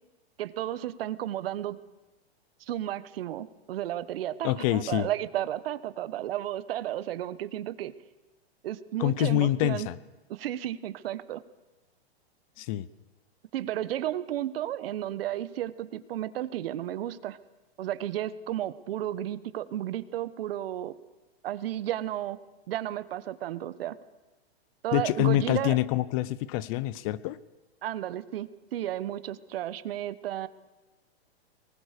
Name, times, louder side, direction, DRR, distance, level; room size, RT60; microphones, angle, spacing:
voice 1, 0.4-1.8 2.6-7.9 8.6-9.9 10.3-11.4 13.5-17.4 17.8-20.9 21.4-22.4 22.7-24.0 24.8-25.8 27.8-30.5, right 12 dB, 65° right, 15 dB, 1.2 m, -33 dB
voice 2, 4.4-5.1 9.0-10.0 12.6-12.9 24.9-27.4, left 15 dB, 35° left, 19 dB, 0.6 m, -26 dB
23.0 x 19.5 x 6.7 m, 1.1 s
hypercardioid pair, 145°, 32 cm